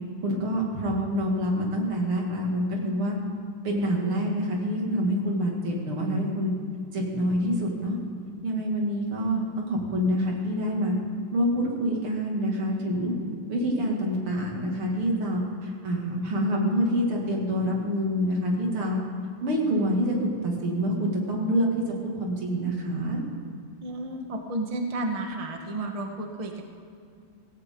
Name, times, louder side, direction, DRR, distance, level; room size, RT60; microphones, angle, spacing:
voice 1, 0.2-3.2 3.6-6.5 6.9-8.0 8.4-10.9 11.3-13.1 13.5-19.0 19.4-23.2, equal, 85° right, -1 dB, 3.2 m, -26 dB
voice 2, 23.8-26.6, right 2 dB, 20° right, 3 dB, 1.1 m, -32 dB
17.0 x 16.5 x 3.8 m, 2.4 s
omnidirectional pair, 2.3 m